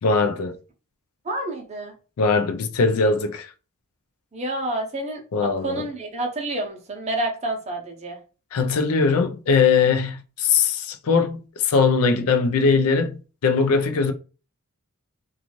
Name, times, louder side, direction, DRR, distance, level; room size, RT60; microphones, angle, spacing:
voice 1, 0.0-0.6 2.2-3.5 5.3-5.8 8.5-13.2 13.4-14.1, left 5 dB, 90° left, 0.4 m, -20 dB
voice 2, 1.2-1.9 4.3-8.2, right 1 dB, 30° right, 0.6 m, -29 dB
2.5 x 2.3 x 2.9 m
head